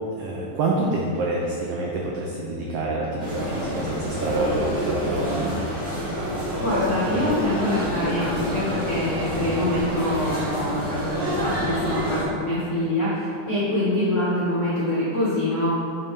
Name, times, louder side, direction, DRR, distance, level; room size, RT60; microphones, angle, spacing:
voice 1, 0.2-5.5, right 2 dB, 90° right, -2 dB, 1.3 m, -27 dB
sound 1, 3.2-12.2, equal, 55° right, 1.3 m, -27 dB
voice 2, 6.6-15.7, left 1 dB, 65° left, -9 dB, 0.7 m, -25 dB
7.6 x 4.0 x 3.6 m, 2.4 s
omnidirectional pair, 3.5 m